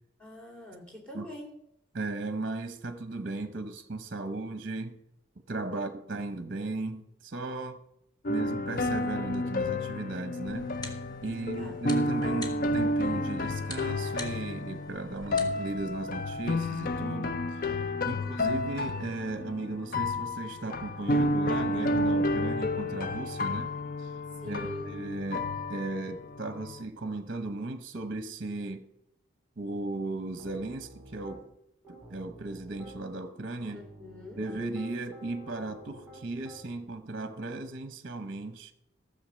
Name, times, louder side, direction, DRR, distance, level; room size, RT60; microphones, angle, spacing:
voice 1, 0.2-1.6 5.7-5.8 8.2-8.4 11.4-11.8 24.3-24.9 33.7-34.4, left 1 dB, 5° left, 2.9 m, -44 dB
voice 2, 1.9-5.0 5.5-7.8 8.3-10.7 11.2-17.8 18.0-23.7 24.0-24.1 24.5-28.8 29.6-31.4 31.9-33.8 34.4-38.7, right 2 dB, 45° right, 0.8 m, -36 dB
sound 1, 8.2-26.8, left 1 dB, 45° left, 0.6 m, -31 dB
sound 2, 10.5-17.0, left 1 dB, 20° left, 1.7 m, -47 dB
Piano, 30.4-31.4 31.8-33.0 33.6-36.9, right 1 dB, 10° right, 3.8 m, -50 dB
15.0 x 7.1 x 6.3 m
head